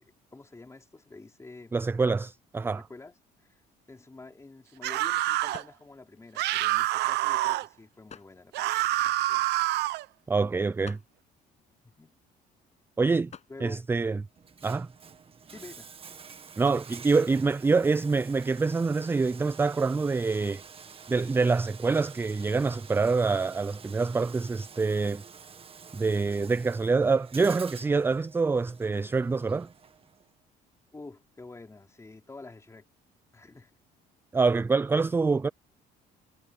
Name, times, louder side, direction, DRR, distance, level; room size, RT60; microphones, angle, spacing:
voice 1, 0.0-1.8 2.6-3.1 3.4-3.6 3.9-9.5 11.8-12.1 13.5-13.9 15.5-15.9 30.9-32.8 33.3-33.8, left 3 dB, 15° left, 4.1 m, -48 dB
voice 2, 1.7-2.8 10.3-11.0 13.0-13.3 13.6-14.2 14.6-14.9 16.6-20.6 21.1-25.2 25.9-29.7 34.3-35.5, right 4 dB, 15° right, 0.3 m, -26 dB
sound 1, 3.9-18.2, left 7 dB, 40° left, 6.9 m, -57 dB
sound 2, 4.8-5.6 6.4-7.7 8.5-10.0, right 16 dB, 80° right, 0.9 m, -27 dB
Bathtub (filling or washing), 14.4-30.3, right 6 dB, 35° right, 1.7 m, -49 dB
cardioid pair, 110°, 17 cm